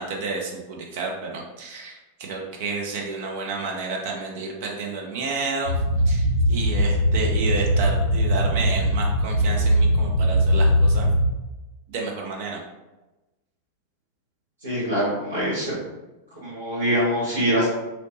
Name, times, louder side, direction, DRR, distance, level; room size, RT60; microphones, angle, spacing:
voice 1, 0.0-2.0 2.3-5.8 6.1-11.1 11.9-12.6, right 4 dB, 50° right, 0 dB, 0.7 m, -30 dB
sound 1, 5.6-11.3, equal, 85° left, 0.6 m, -20 dB
voice 2, 14.6-15.8 16.4-17.7, equal, 75° right, -11 dB, 1.4 m, -24 dB
3.2 x 3.0 x 2.7 m, 1.0 s
figure-of-eight pair, 90°, 0 cm